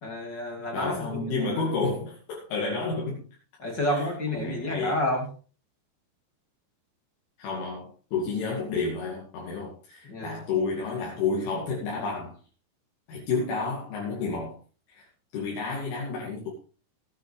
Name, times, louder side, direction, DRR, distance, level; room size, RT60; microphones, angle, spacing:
voice 1, 0.0-1.5 3.6-5.3 10.0-10.4, left 1 dB, 35° left, 2 dB, 1.8 m, -30 dB
voice 2, 0.7-3.2 3.9-4.1 4.3-4.9 7.4-12.4 13.1-14.6 14.9-15.0 15.3-16.5, left 4 dB, 70° left, -4 dB, 4.8 m, -30 dB
18.0 x 10.0 x 3.3 m, 0.36 s
omnidirectional pair, 5.9 m